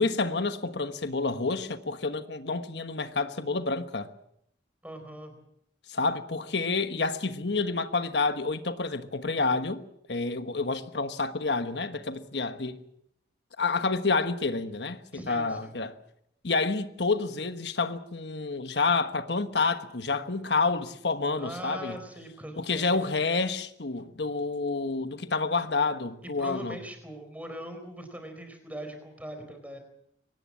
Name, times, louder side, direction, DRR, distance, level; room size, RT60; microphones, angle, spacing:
voice 1, 0.0-4.1 5.9-9.8 10.1-12.8 13.6-16.0 16.4-22.0 22.6-26.8, left 3 dB, 75° left, 1.3 m, -29 dB
voice 2, 4.8-5.4 15.1-15.7 21.4-23.1 26.4-29.8, equal, 10° right, 4.4 m, -41 dB
23.5 x 18.5 x 7.6 m
head